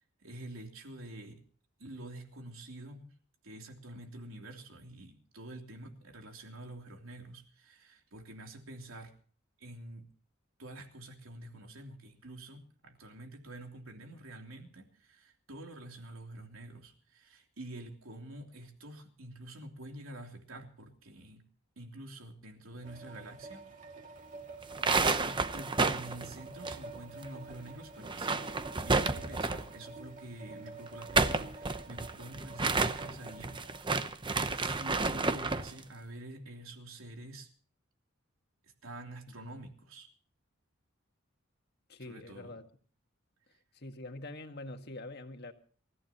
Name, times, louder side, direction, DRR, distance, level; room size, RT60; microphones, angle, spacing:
voice 1, 0.2-1.4 1.8-3.1 3.4-9.1 9.6-10.1 10.6-21.4 21.8-23.7 24.0-24.1 25.0-28.6 28.8-34.2 34.5-37.5 38.8-40.1 42.0-42.5, right 1 dB, 80° right, 3.1 m, -47 dB
sound 1, 22.8-33.8, right 3 dB, 40° right, 2.3 m, -48 dB
sound 2, 24.6-27.3 27.5-27.6 28.0-29.8 30.9-35.7, right 3 dB, 25° right, 0.8 m, -31 dB
voice 2, 41.9-42.7 43.7-45.5, left 2 dB, 50° left, 1.7 m, -45 dB
27.5 x 14.5 x 2.9 m
head